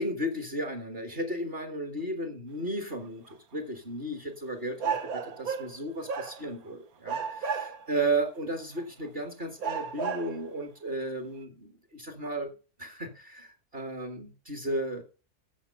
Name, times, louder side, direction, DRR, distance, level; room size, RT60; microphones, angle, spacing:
voice 1, 0.0-12.5 12.8-15.0, right 1 dB, 40° right, 5 dB, 1.7 m, -34 dB
sound 1, 3.3-3.4 4.8-5.8 6.1-6.7 7.1-8.0 8.8-8.9 9.6-10.4, right 6 dB, 70° right, 1.5 m, -33 dB
14.5 x 5.6 x 5.4 m, 0.35 s
omnidirectional pair, 1.7 m